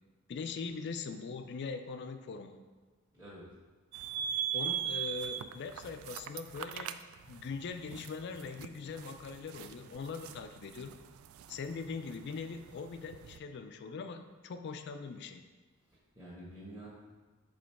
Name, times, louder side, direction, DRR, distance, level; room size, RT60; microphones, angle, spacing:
voice 1, 0.3-2.6 4.5-7.0 7.3-10.9 11.5-15.4, left 4 dB, 55° left, 8 dB, 0.4 m, -41 dB
voice 2, 3.1-3.4 15.9-16.9, right 1 dB, 15° right, -10 dB, 1.3 m, -49 dB
sound 1, 3.9-13.4, right 9 dB, 80° right, 0.3 m, -41 dB
5.1 x 3.8 x 5.7 m, 1.3 s
head